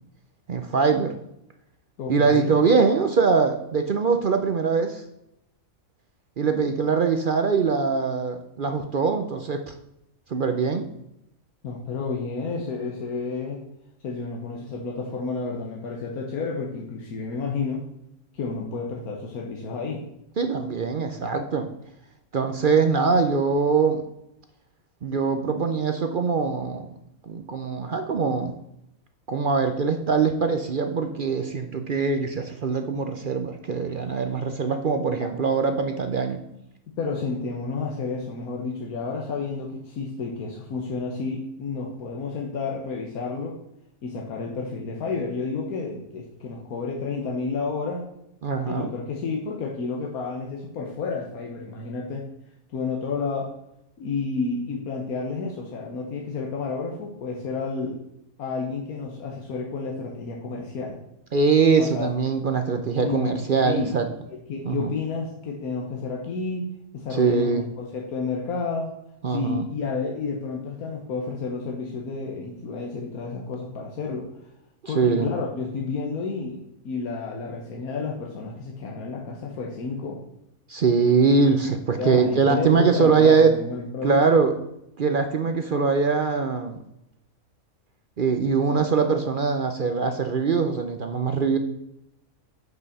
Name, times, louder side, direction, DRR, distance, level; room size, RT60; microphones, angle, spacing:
voice 1, 0.5-1.1 2.1-5.0 6.4-9.7 10.3-10.9 20.4-21.7 22.3-24.0 25.0-27.0 27.2-28.6 29.3-36.4 48.4-48.9 61.3-64.1 64.7-64.9 67.1-67.7 69.2-69.6 74.8-75.3 80.7-83.5 84.0-84.5 85.0-86.8 88.2-91.6, right 5 dB, 55° right, 7 dB, 0.6 m, -22 dB
voice 2, 2.0-2.6 11.6-13.7 14.0-17.9 18.3-20.1 35.2-35.3 37.0-43.5 44.0-48.1 48.7-52.3 52.7-53.5 54.0-58.0 58.4-61.0 61.8-62.1 63.0-63.9 64.5-66.7 66.9-68.9 69.3-74.3 74.9-76.6 76.8-80.2 82.0-84.2, left 4 dB, 90° left, -1 dB, 1.5 m, -31 dB
6.1 x 5.5 x 6.7 m, 0.82 s
omnidirectional pair, 1.5 m